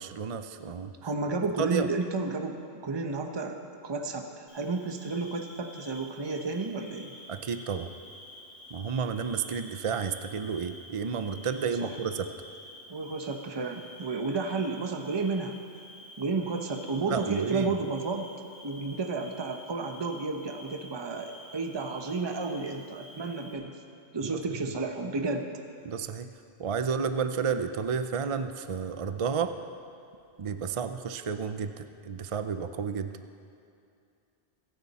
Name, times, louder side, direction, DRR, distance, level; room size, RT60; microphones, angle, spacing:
voice 1, 0.0-0.9 1.6-1.9 7.3-7.9 8.7-12.3 17.1-17.7 24.2-24.4 25.8-26.3 26.6-29.6 30.4-33.1, right 6 dB, 45° right, 9 dB, 0.4 m, -31 dB
voice 2, 1.0-7.1 11.8-11.9 12.9-15.6 16.2-18.3 18.6-23.8 24.1-25.5, right 3 dB, 25° right, 4 dB, 0.8 m, -32 dB
Bird / Cricket, 4.5-23.5, left 1 dB, 45° left, 4.4 m, -49 dB
25.5 x 9.5 x 4.2 m, 2.5 s
omnidirectional pair, 1.3 m